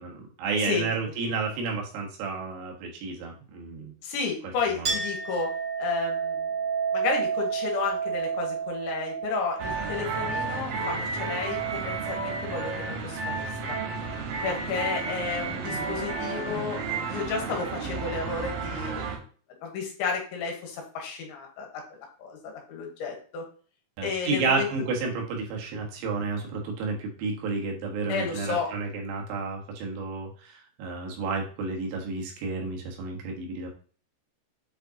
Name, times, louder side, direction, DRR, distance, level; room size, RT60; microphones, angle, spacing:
voice 1, 0.0-3.9 4.7-5.0 14.6-14.8 24.0-33.7, right 4 dB, 80° right, 0 dB, 4.0 m, -31 dB
voice 2, 4.0-5.5 5.8-6.5 6.9-13.8 14.4-19.0 19.6-23.4 24.0-24.7 28.1-28.7, left 5 dB, 70° left, 1 dB, 3.5 m, -32 dB
Chink clink, 4.8-11.9, right 6 dB, 35° right, 2.4 m, -31 dB
sound 1, 9.6-19.2, right 4 dB, 65° right, 2.5 m, -32 dB
8.4 x 5.0 x 2.9 m, 0.41 s
omnidirectional pair, 5.7 m